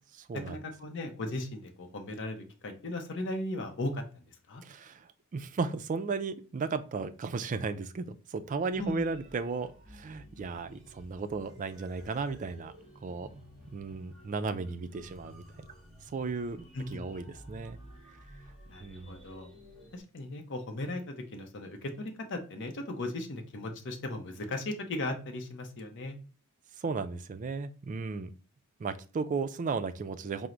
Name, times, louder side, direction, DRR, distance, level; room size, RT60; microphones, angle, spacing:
voice 1, 0.5-4.6 8.8-9.1 16.7-17.0 18.7-19.5 19.9-26.2, left 2 dB, 55° left, 4 dB, 0.7 m, -37 dB
voice 2, 4.6-12.7 13.0-15.4 16.1-17.8 18.8-19.2 26.8-28.3 28.8-30.5, right 4 dB, 35° right, 10 dB, 0.3 m, -35 dB
sound 1, 8.7-20.0, equal, ahead, 1.3 m, -53 dB
4.5 x 2.1 x 3.7 m, 0.37 s
head